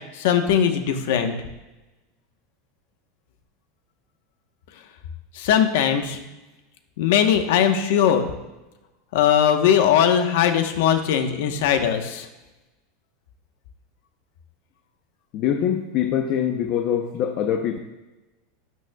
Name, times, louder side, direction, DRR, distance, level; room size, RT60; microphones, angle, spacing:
voice 1, 0.0-1.3 5.3-6.2 7.0-8.3 9.1-12.3, left 9 dB, 70° left, 6 dB, 1.1 m, -20 dB
voice 2, 15.3-17.8, left 9 dB, 40° left, 4 dB, 0.7 m, -23 dB
12.5 x 9.3 x 2.3 m, 1.1 s
supercardioid pair, 155°, 0 cm